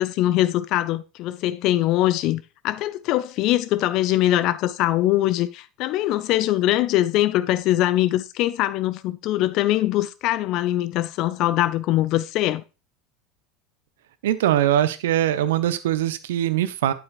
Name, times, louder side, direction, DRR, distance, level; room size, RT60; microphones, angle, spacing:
voice 1, 0.0-12.6, left 14 dB, 45° left, 0.4 m, -22 dB
voice 2, 14.2-16.9, right 12 dB, 65° right, 0.6 m, -22 dB
8.6 x 8.0 x 2.4 m
figure-of-eight pair, 75°, 0 cm